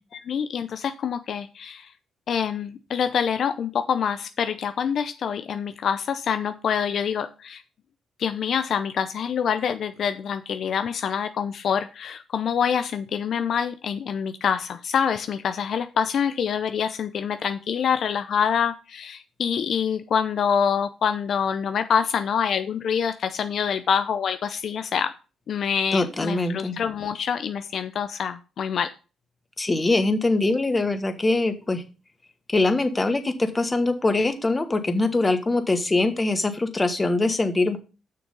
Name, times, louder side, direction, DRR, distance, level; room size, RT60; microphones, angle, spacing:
voice 1, 0.1-1.9 2.3-7.6 8.2-25.1 25.5-28.9, left 7 dB, 60° left, 9 dB, 0.6 m, -26 dB
voice 2, 25.9-26.8 29.6-31.8 32.5-37.8, left 2 dB, 20° left, 8 dB, 1.3 m, -23 dB
6.8 x 6.2 x 5.4 m, 0.33 s
cardioid pair, 90°, 0 cm